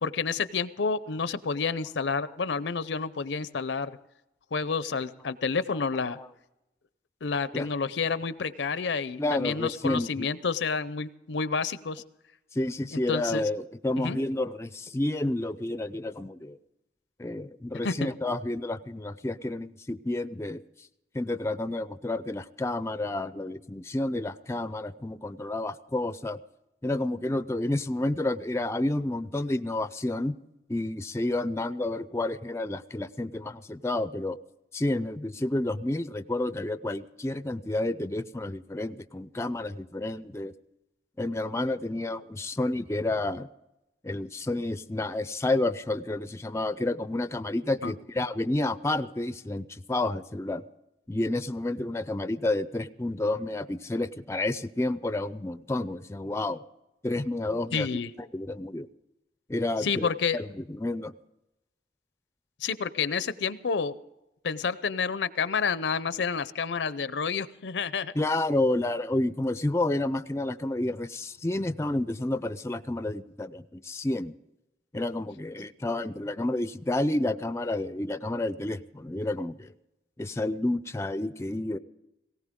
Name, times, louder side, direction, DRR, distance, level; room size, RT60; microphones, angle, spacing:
voice 1, 0.0-3.9 4.5-6.2 7.2-12.0 12.9-13.5 14.0-14.2 17.8-18.1 47.8-47.9 57.7-58.1 59.8-60.4 62.6-63.9 64.4-68.1, left 5 dB, 80° left, 15 dB, 0.6 m, -29 dB
voice 2, 9.2-10.3 12.5-16.6 17.2-20.6 21.1-26.4 26.8-30.3 30.7-34.4 34.7-40.5 41.2-43.5 44.0-50.6 51.1-56.6 57.0-57.9 58.3-58.9 59.5-61.1 68.1-74.3 74.9-79.7 80.2-81.8, left 2 dB, 15° left, 13 dB, 0.4 m, -30 dB
19.0 x 17.5 x 3.7 m, 0.93 s
head